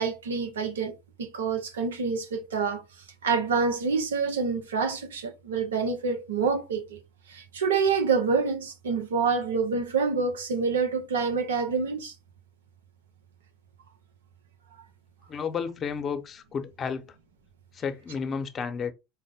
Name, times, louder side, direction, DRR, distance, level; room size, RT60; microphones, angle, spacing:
voice 1, 0.0-2.8 3.2-7.0 7.3-12.1, right 5 dB, 85° right, 0.7 m, -27 dB
voice 2, 15.3-17.1 17.7-18.9, left 6 dB, 40° left, 0.7 m, -32 dB
4.7 x 2.1 x 3.5 m
hypercardioid pair, 75°, 0 cm